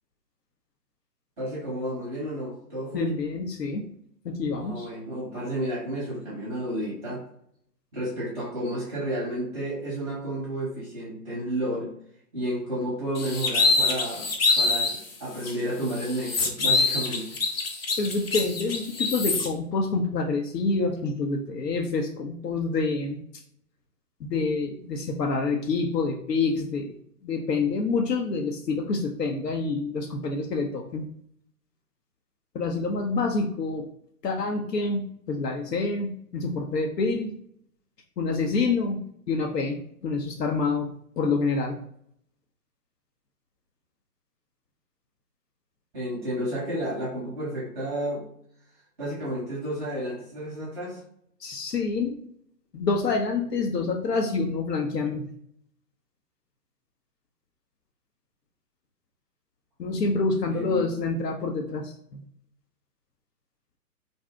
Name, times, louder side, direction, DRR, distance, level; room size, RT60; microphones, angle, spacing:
voice 1, 1.4-3.1 4.6-7.2 7.9-11.9 12.3-14.3 14.5-17.3 45.9-48.2 49.0-51.0 60.0-60.2 60.5-60.9, right 1 dB, 5° right, -7 dB, 0.6 m, -31 dB
voice 2, 2.9-3.8 4.2-4.9 18.0-23.2 24.2-31.1 32.5-33.8 34.2-37.3 38.2-39.0 39.3-41.8 51.4-52.2 52.7-55.3 59.8-62.2, left 3 dB, 85° left, 1 dB, 0.6 m, -27 dB
sound 1, 13.2-15.0 15.4-15.5 15.9-19.5, left 3 dB, 40° left, 0.5 m, -25 dB
2.6 x 2.0 x 3.3 m, 0.67 s
figure-of-eight pair, 140°, 47 cm